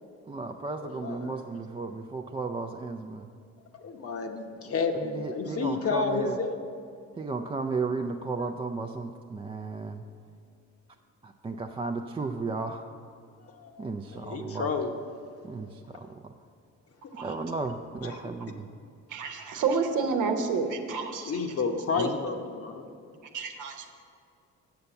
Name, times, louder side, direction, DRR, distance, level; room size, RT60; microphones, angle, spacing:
voice 1, 0.3-3.3 5.0-6.4 7.2-10.0 11.2-12.9 13.8-14.7 15.4-16.3 17.2-18.7 22.0-22.2, right 3 dB, 20° right, 4 dB, 0.4 m, -34 dB
voice 2, 0.8-1.4 3.7-6.6 13.4-15.0 18.0-18.2 21.2-22.9, left 4 dB, 50° left, 5 dB, 0.9 m, -31 dB
voice 3, 19.1-21.3 23.3-23.9, right 5 dB, 80° right, 5 dB, 1.0 m, -29 dB
7.0 x 6.6 x 7.0 m, 2.4 s
cardioid pair, 90°, 30 cm